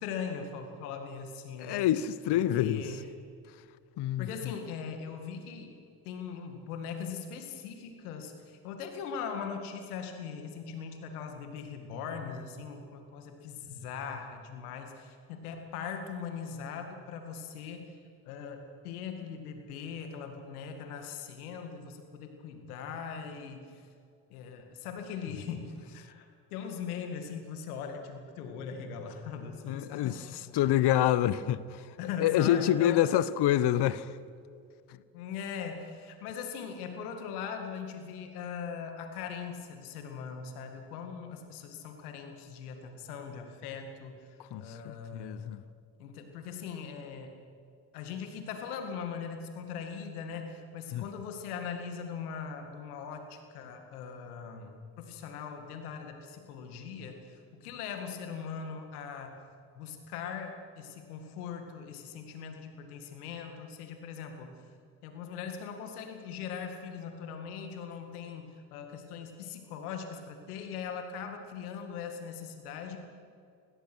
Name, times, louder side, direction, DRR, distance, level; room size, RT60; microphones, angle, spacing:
voice 1, 0.0-1.9 2.3-3.0 4.2-5.8 6.0-17.9 18.2-23.9 24.3-30.9 32.0-33.1 35.1-45.5 46.0-47.4 47.9-59.4 59.8-64.5 65.0-73.0, left 6 dB, 90° left, 2.1 m, -40 dB
voice 2, 1.6-2.8 4.0-4.5 29.6-30.2 30.5-31.9 32.2-34.1 44.5-45.6 50.9-51.0, left 12 dB, 65° left, 1.0 m, -27 dB
25.0 x 17.0 x 6.2 m
hypercardioid pair, 55°, 43 cm